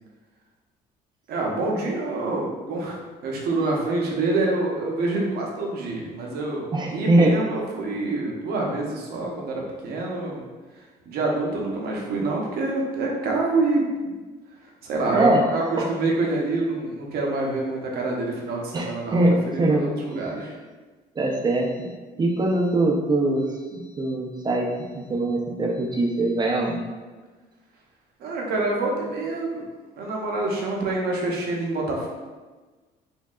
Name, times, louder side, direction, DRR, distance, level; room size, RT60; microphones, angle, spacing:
voice 1, 1.3-6.6 6.9-10.4 11.1-14.1 14.8-19.2 19.5-20.5 28.2-29.6 30.0-32.1, right 2 dB, 70° right, -1 dB, 0.9 m, -26 dB
voice 2, 6.7-7.4 15.1-15.4 15.8-15.9 18.7-19.9 20.2-20.3 21.2-21.9 22.2-26.8, right 2 dB, 25° right, 0 dB, 0.6 m, -22 dB
4.4 x 2.7 x 2.4 m, 1.3 s
cardioid pair, 110°, 17 cm